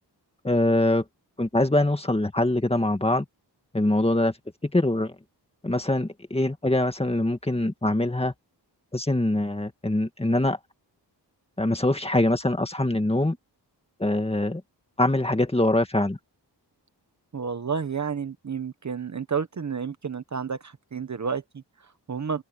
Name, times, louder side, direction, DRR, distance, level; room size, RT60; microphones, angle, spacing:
voice 1, 0.4-1.0 1.4-3.2 3.7-4.3 4.6-5.2 5.6-8.3 8.9-10.6 11.6-13.4 14.0-14.6 15.0-16.2, left 1 dB, 15° left, 1.9 m, -23 dB
voice 2, 17.3-22.4, right 6 dB, 40° right, 1.0 m, -31 dB
wide cardioid pair, 125°, 42 cm